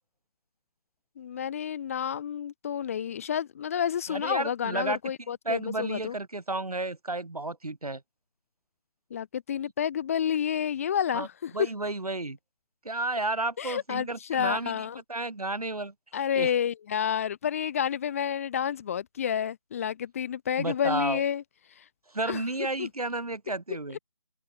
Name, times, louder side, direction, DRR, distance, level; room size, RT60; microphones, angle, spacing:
voice 1, 1.2-6.1 9.1-11.5 13.6-15.0 16.1-21.4 21.8-21.9 22.3-22.4 22.8-22.9, left 9 dB, 25° left, 1.0 m, -30 dB
voice 2, 4.1-5.0 5.4-8.0 11.1-11.3 11.5-12.4 12.8-15.9 16.3-16.5 20.6-21.2 22.1-24.0, right 2 dB, 85° right, 4.4 m, -32 dB
figure-of-eight pair, 160°, 19 cm